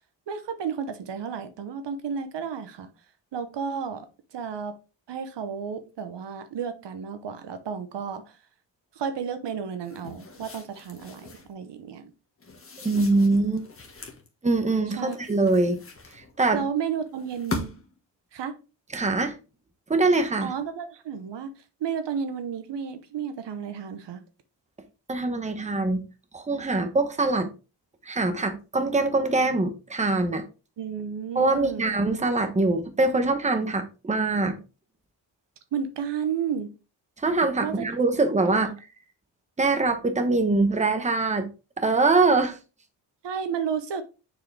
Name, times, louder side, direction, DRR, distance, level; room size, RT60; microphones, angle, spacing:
voice 1, 0.3-2.9 3.3-4.1 4.3-4.8 5.1-8.4 8.9-12.1 14.9-15.2 16.5-17.7 18.3-18.5 20.4-24.2 30.8-31.9 35.7-36.7 37.6-37.9 38.5-38.6 43.2-44.0, right 7 dB, 65° right, 1.0 m, -32 dB
sound 1, 9.8-11.5 12.4-14.3 14.9-16.5 17.2-18.0, left 3 dB, 30° left, 1.5 m, -39 dB
voice 2, 12.8-13.7 14.4-15.8 16.1-16.6 18.9-19.4 19.9-20.5 25.1-26.0 26.3-27.5 28.1-30.4 31.3-34.6 37.2-38.7 39.6-41.5 41.8-42.6, right 3 dB, 15° right, 1.0 m, -23 dB
6.6 x 4.8 x 3.3 m
wide cardioid pair, 125°, 45 cm